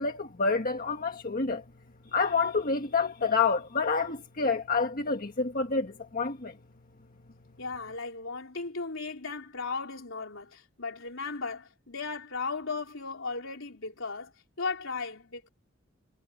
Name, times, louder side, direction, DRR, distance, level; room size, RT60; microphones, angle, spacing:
voice 1, 0.0-1.6 2.1-6.5, left 4 dB, 45° left, 1.5 m, -28 dB
voice 2, 7.6-14.3 14.6-15.5, left 4 dB, 70° left, 4.1 m, -36 dB
head